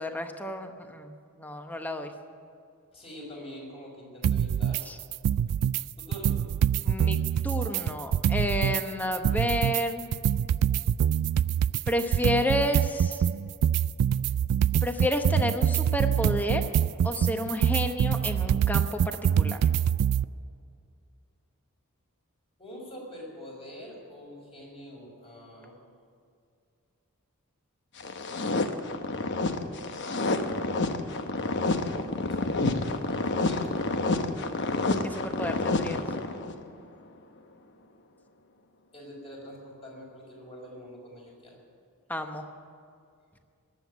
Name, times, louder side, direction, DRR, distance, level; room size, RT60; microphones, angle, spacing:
voice 1, 0.0-2.1 4.9-5.0 6.8-7.2 7.4-10.1 11.9-13.2 14.8-16.6 17.0-19.6 35.0-36.0 42.1-42.4, left 1 dB, 10° left, 6 dB, 0.9 m, -30 dB
voice 2, 2.9-4.9 6.0-6.4 22.6-25.7 30.6-31.3 33.0-34.2 38.9-41.6, equal, 25° left, -2 dB, 4.7 m, -44 dB
sound 1, 4.2-4.8 5.1-5.8 6.1-8.8 9.1-20.2, right 9 dB, 90° right, 0.3 m, -25 dB
sound 2, 28.0-36.6, left 2 dB, 55° left, 0.9 m, -29 dB
19.5 x 7.9 x 9.3 m, 2.3 s
head